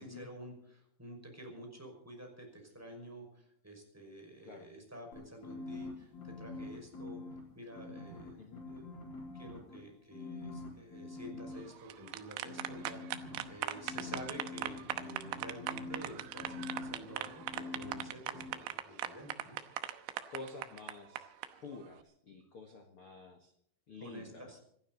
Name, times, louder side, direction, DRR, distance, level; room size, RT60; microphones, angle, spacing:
voice 1, 0.0-7.2 7.5-8.9 9.3-19.6 24.0-24.6, right 1 dB, 5° right, 2 dB, 5.3 m, -50 dB
sound 1, 5.1-7.4 7.7-9.8 10.1-11.6 12.4-18.1 18.3-18.5, left 3 dB, 55° left, 6.1 m, -45 dB
sound 2, 11.7-21.5, right 13 dB, 90° right, 3.3 m, -39 dB
voice 2, 20.3-21.3 21.6-23.5 23.9-24.5, left 3 dB, 70° left, 4 dB, 1.3 m, -49 dB
26.0 x 12.5 x 4.0 m, 0.67 s
omnidirectional pair, 5.2 m